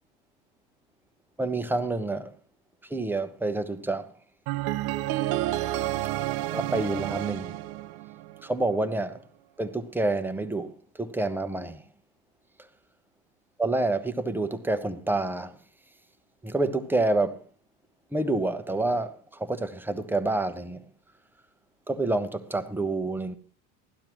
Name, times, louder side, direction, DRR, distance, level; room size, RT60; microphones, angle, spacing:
voice 1, 1.4-2.3 2.9-4.1 6.5-7.5 8.4-9.2 9.6-11.8 13.6-15.5 16.4-17.4 18.1-20.8 21.9-23.4, right 2 dB, 5° right, 0.8 m, -28 dB
sound 1, 4.5-8.5, right 15 dB, 55° right, 0.6 m, -30 dB
16.5 x 12.0 x 3.1 m
supercardioid pair, 100°, 45 cm